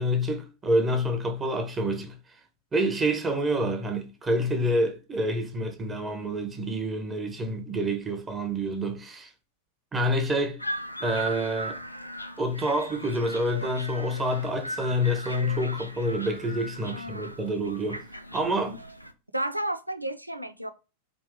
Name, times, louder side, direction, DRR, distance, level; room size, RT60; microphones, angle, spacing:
voice 1, 0.0-2.2 2.7-9.3 9.9-10.6 11.0-11.8 12.4-18.0 18.3-18.8, equal, 20° right, 1.0 m, -27 dB
sound 1, 10.6-19.1, equal, 90° left, 0.5 m, -38 dB
voice 2, 16.9-17.3 18.7-18.8 19.3-20.7, right 1 dB, 85° right, 0.4 m, -32 dB
5.0 x 2.9 x 3.6 m
figure-of-eight pair, 90°, 0 cm